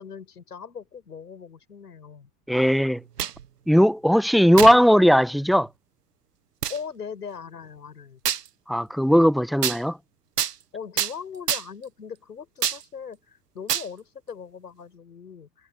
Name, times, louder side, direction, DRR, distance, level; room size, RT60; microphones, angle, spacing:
voice 1, 0.0-2.3 6.7-8.2 10.7-15.7, left 6 dB, 90° left, 7.7 m, -39 dB
voice 2, 2.5-3.0 3.7-5.7 8.7-10.0, equal, ahead, 1.5 m, -18 dB
sound 1, 3.0-3.5 4.6-4.8 5.5-5.6 6.6-6.8 8.3-8.5 9.6-9.8 10.4-10.6 11.0-11.1 11.5-11.8 12.6-12.8 13.7-13.9, right 9 dB, 85° right, 1.8 m, -26 dB
hypercardioid pair, 70°, 46 cm